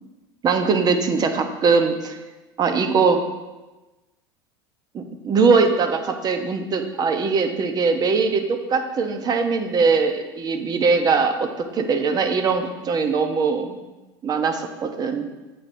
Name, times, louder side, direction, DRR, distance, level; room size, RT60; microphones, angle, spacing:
voice 1, 0.4-2.2 2.6-3.2 4.9-13.8 14.2-15.3, right 4 dB, 35° right, 6 dB, 1.0 m, -21 dB
8.5 x 8.5 x 2.8 m, 1.1 s
hypercardioid pair, 85°, 12 cm